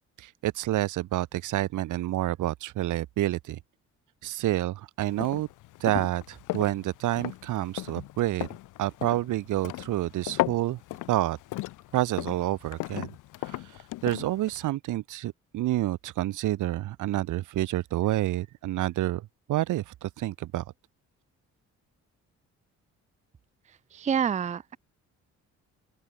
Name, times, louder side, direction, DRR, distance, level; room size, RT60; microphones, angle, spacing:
voice 1, 0.2-3.6 4.2-5.5 5.8-8.5 8.8-10.8 11.1-11.4 11.9-13.1 13.4-13.6 14.0-20.6, right 15 dB, 80° right, 1.5 m, -28 dB
sound 1, 5.1-14.7, left 17 dB, 90° left, 1.1 m, -36 dB
voice 2, 23.9-24.8, right 7 dB, 25° right, 0.5 m, -27 dB
open air
cardioid pair, 90°, 30 cm